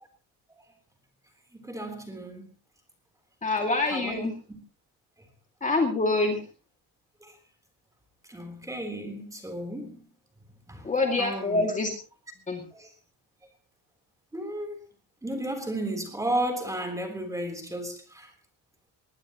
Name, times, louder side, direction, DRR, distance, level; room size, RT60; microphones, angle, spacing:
voice 1, 1.5-2.5 3.9-4.6 7.2-7.3 8.3-10.0 10.7-10.8 11.2-11.6 12.7-12.9 14.3-14.8 15.2-18.3, right 1 dB, 10° right, 3.6 m, -33 dB
voice 2, 3.4-4.3 5.6-6.4 10.8-11.9 12.5-12.6, left 2 dB, 20° left, 2.3 m, -25 dB
21.0 x 19.0 x 3.0 m
cardioid pair, 180°, 40 cm